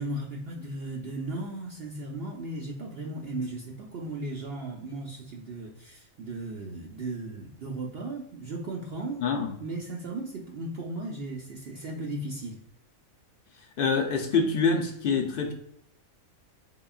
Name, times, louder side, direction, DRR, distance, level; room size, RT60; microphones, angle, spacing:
voice 1, 0.0-9.2 9.6-12.6, right 2 dB, 60° right, -1 dB, 0.7 m, -36 dB
voice 2, 9.2-9.5 13.8-15.5, left 4 dB, 60° left, 3 dB, 0.6 m, -25 dB
3.8 x 3.7 x 2.3 m, 0.71 s
omnidirectional pair, 1.4 m